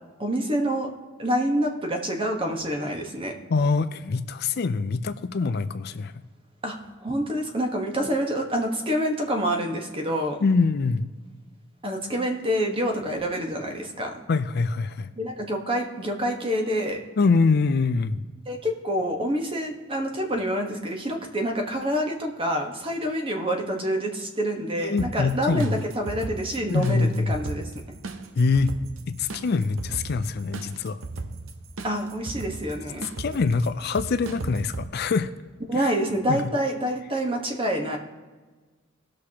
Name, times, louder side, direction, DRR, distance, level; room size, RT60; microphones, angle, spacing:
voice 1, 0.2-0.9 1.2-3.3 6.6-10.4 11.8-14.2 15.2-17.0 18.5-27.6 31.8-33.1 35.7-38.0, equal, 25° right, 3 dB, 1.2 m, -27 dB
voice 2, 3.5-6.1 10.4-11.1 14.3-15.1 17.2-18.2 24.8-25.7 26.7-27.3 28.4-28.7 29.1-31.0 33.2-35.3 35.8-35.9 36.3-36.4, left 4 dB, 50° left, 11 dB, 0.4 m, -24 dB
sound 1, 25.0-34.9, right 3 dB, 85° right, 0.8 m, -37 dB
19.0 x 6.4 x 2.9 m, 1.4 s
head